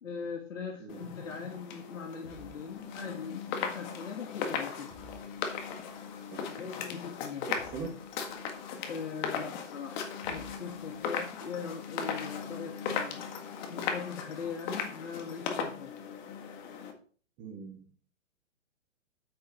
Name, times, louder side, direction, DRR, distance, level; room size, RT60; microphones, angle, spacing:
voice 1, 0.0-4.9 6.5-7.5 8.8-13.4 13.7-15.9, left 6 dB, 75° left, 3 dB, 1.8 m, -41 dB
sound 1, 0.9-16.9, left 6 dB, 35° left, 1.8 m, -38 dB
sound 2, 2.2-3.4 4.9-5.8 7.6-8.7 10.2-11.2, right 1 dB, 5° right, 2.8 m, -56 dB
voice 2, 7.5-7.9 17.4-17.8, right 5 dB, 25° right, -1 dB, 1.8 m, -41 dB
8.7 x 8.7 x 4.3 m, 0.43 s
hypercardioid pair, 135°, 39 cm